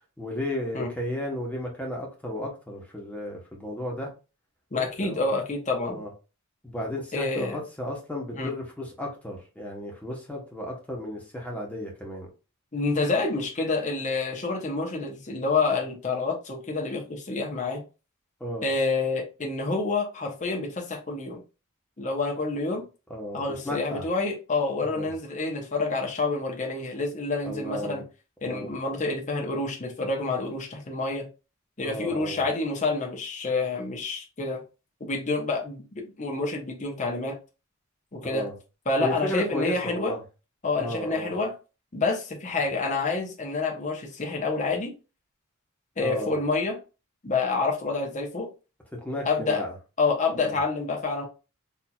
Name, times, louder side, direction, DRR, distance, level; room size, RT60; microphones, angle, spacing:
voice 1, 0.2-4.1 4.8-5.2 5.9-6.1 6.6-12.3 18.4-18.7 23.1-24.0 24.8-25.1 27.4-28.0 28.4-28.7 31.8-32.4 38.2-38.5 39.0-40.2 40.8-41.3 46.0-46.4 48.9-49.7 50.3-50.6, left 1 dB, 5° left, -1 dB, 1.0 m, -34 dB
voice 2, 4.7-6.0 7.1-7.6 8.3-8.5 12.7-17.8 18.6-21.4 22.0-22.8 23.3-28.0 28.4-31.3 31.8-34.6 35.0-37.4 38.1-38.5 38.9-40.1 40.6-41.5 41.9-44.9 46.0-46.8 47.2-48.5 49.2-49.6 50.0-51.2, left 3 dB, 35° left, 1 dB, 0.8 m, -28 dB
4.3 x 2.7 x 2.3 m, 0.32 s
head